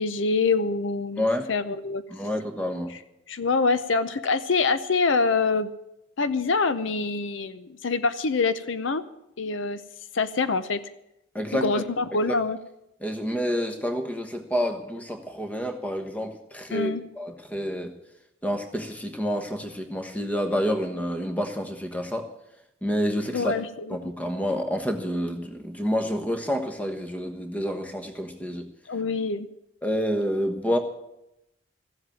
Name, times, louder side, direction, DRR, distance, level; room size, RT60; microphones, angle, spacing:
voice 1, 0.0-2.0 2.9-3.0 3.3-5.7 6.2-9.0 9.4-9.8 10.1-10.8 11.6-12.6 16.7-17.0 23.3-24.1 28.9-29.5, left 4 dB, 70° left, 12 dB, 0.6 m, -25 dB
voice 2, 2.1-2.9 11.3-11.8 12.3-12.4 13.0-17.9 18.4-22.3 22.8-23.5 23.9-28.7 29.8-30.8, equal, 5° left, 5 dB, 1.2 m, -28 dB
15.0 x 7.9 x 9.1 m, 0.86 s
head